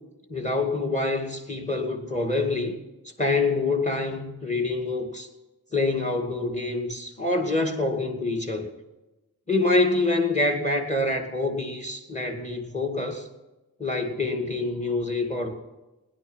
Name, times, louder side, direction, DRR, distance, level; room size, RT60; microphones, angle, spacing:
voice 1, 0.3-2.7 3.2-5.3 5.7-8.7 9.5-13.3 13.8-15.6, left 2 dB, 20° left, 4 dB, 2.2 m, -26 dB
17.0 x 10.5 x 5.7 m, 1.0 s
wide cardioid pair, 65°, 36 cm